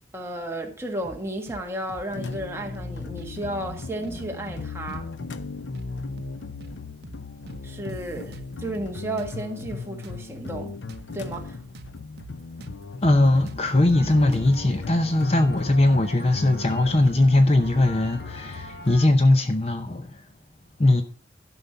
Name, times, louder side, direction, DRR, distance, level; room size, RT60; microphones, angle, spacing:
voice 1, 0.1-5.1 7.6-10.7 11.1-11.6, right 1 dB, 15° right, 1.6 m, -33 dB
sound 1, 1.0-1.6 1.9-2.1 2.3-3.3 3.6-3.8 4.0-5.1 5.3-5.5 5.7-6.8 7.0-7.2 7.5-8.9 9.2-11.9 12.2-12.3 12.6-14.6, right 2 dB, 55° right, 0.8 m, -44 dB
sound 2, 2.1-19.0, left 4 dB, 75° left, 0.6 m, -36 dB
voice 2, 13.0-20.2 20.8-21.0, left 1 dB, 35° left, 0.7 m, -20 dB
sound 3, 13.9-19.1, left 1 dB, 55° left, 2.4 m, -41 dB
12.0 x 5.5 x 5.5 m
head